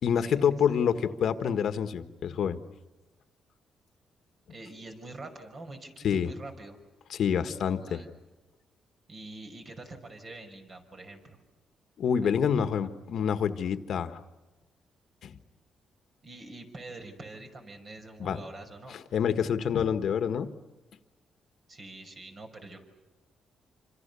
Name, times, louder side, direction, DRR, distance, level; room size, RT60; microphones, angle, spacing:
voice 1, 0.0-2.6 6.0-6.3 7.1-8.0 12.0-14.2 15.2-15.3 18.2-18.4 18.9-20.5, left 7 dB, 65° left, 9 dB, 1.5 m, -27 dB
voice 2, 4.5-6.8 7.8-8.1 9.1-11.4 12.2-12.7 16.2-19.0 21.7-22.8, right 2 dB, 40° right, 4 dB, 5.7 m, -45 dB
27.0 x 25.5 x 7.0 m, 1.1 s
cardioid pair, 110°, 0 cm